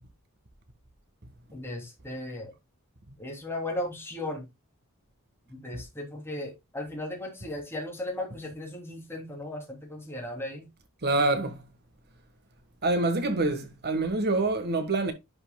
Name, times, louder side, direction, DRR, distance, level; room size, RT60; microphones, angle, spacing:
voice 1, 1.5-2.5 3.2-4.4 5.5-10.7, left 1 dB, 10° left, 3.2 m, -36 dB
voice 2, 11.0-11.6 12.8-15.1, right 2 dB, 45° right, 1.5 m, -26 dB
11.0 x 5.7 x 2.2 m
head